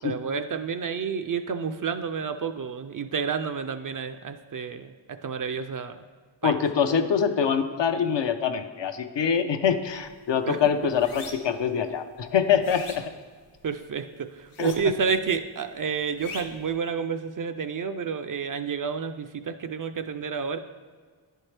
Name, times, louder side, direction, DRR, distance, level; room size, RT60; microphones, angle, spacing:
voice 1, 0.0-6.0 6.4-6.6 10.4-10.6 13.6-20.6, right 6 dB, 45° right, 9 dB, 0.4 m, -30 dB
voice 2, 6.4-13.0 14.6-14.7, left 7 dB, 60° left, 8 dB, 0.6 m, -24 dB
sound 1, 9.9-10.1 10.5-11.6 12.1-13.8 14.4-15.2 15.5-16.7, left 4 dB, 90° left, 0.9 m, -42 dB
10.5 x 4.5 x 3.3 m, 1.5 s
cardioid pair, 60°, 48 cm